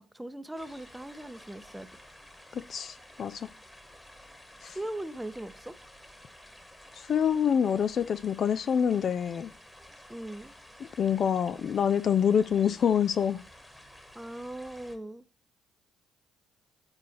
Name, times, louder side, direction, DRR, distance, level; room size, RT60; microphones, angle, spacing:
voice 1, 0.0-1.9 4.6-5.8 10.1-10.5 14.1-15.2, right 1 dB, 10° right, 0.7 m, -39 dB
sound 1, 0.5-15.0, left 1 dB, 10° left, 1.5 m, -52 dB
voice 2, 2.5-3.5 4.6-4.8 7.1-9.5 11.0-13.4, left 8 dB, 55° left, 0.4 m, -26 dB
8.6 x 4.6 x 3.1 m
hypercardioid pair, 50°, 0 cm